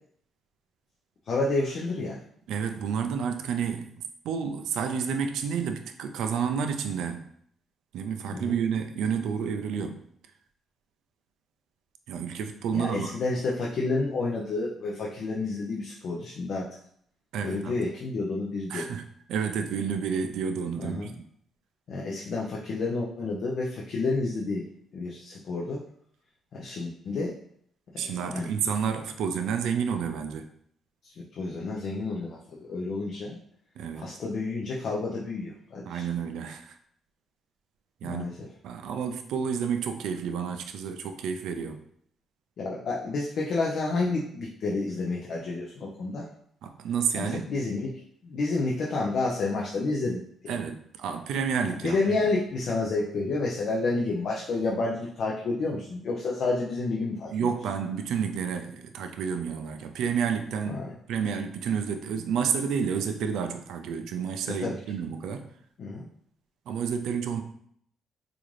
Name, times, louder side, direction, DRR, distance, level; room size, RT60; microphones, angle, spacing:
voice 1, 1.3-2.2 8.3-8.6 12.7-16.7 17.4-18.9 20.8-21.1 21.9-24.7 24.9-25.8 26.5-27.4 27.9-28.5 31.0-33.4 33.9-36.0 38.0-38.3 42.6-46.3 47.2-50.5 51.8-57.3 60.7-60.9 64.5-64.8 65.8-66.1, left 3 dB, 65° left, -3 dB, 0.5 m, -30 dB
voice 2, 2.5-3.9 4.2-7.2 7.9-10.0 12.1-13.1 17.3-17.8 18.7-19.0 19.3-21.1 28.0-30.5 33.8-34.1 35.9-36.8 38.0-38.3 38.6-41.8 46.6-47.5 50.5-52.2 57.3-60.8 61.1-65.5 66.7-67.4, right 7 dB, 85° right, 6 dB, 0.4 m, -30 dB
3.7 x 2.4 x 3.1 m, 0.66 s
cardioid pair, 90°, 0 cm